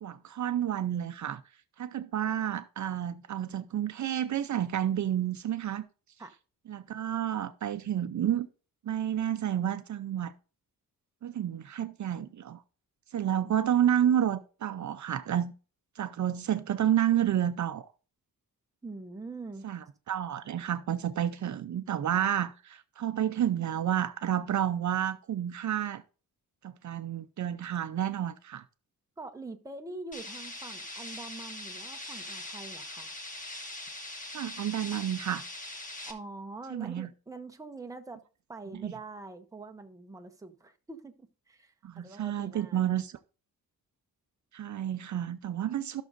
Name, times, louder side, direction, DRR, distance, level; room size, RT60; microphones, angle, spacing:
voice 1, 0.0-1.4 1.8-5.8 6.7-8.5 8.8-10.3 11.2-12.6 13.1-15.5 16.0-17.9 19.6-26.0 26.6-28.6 34.3-35.4 36.7-37.1 38.8-38.9 41.8-43.2 44.5-46.0, right 10 dB, 55° right, 0.6 m, -30 dB
voice 2, 18.8-19.7 29.2-33.2 36.0-38.2 38.5-42.8, right 3 dB, 10° right, 0.7 m, -44 dB
sound 1, 30.1-36.1, left 1 dB, 25° left, 1.1 m, -42 dB
16.0 x 6.2 x 2.5 m
wide cardioid pair, 145°, 35 cm